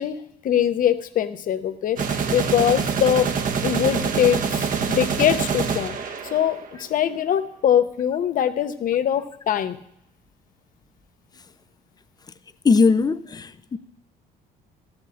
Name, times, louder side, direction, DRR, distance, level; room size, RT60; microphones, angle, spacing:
voice 1, 0.0-3.3 3.6-6.0 6.3-9.8, left 10 dB, 55° left, 1.0 m, -22 dB
sound 1, 2.0-6.8, right 6 dB, 50° right, 1.1 m, -25 dB
voice 2, 12.6-13.8, left 4 dB, 25° left, 0.6 m, -19 dB
13.0 x 6.3 x 8.5 m
cardioid pair, 110°, 17 cm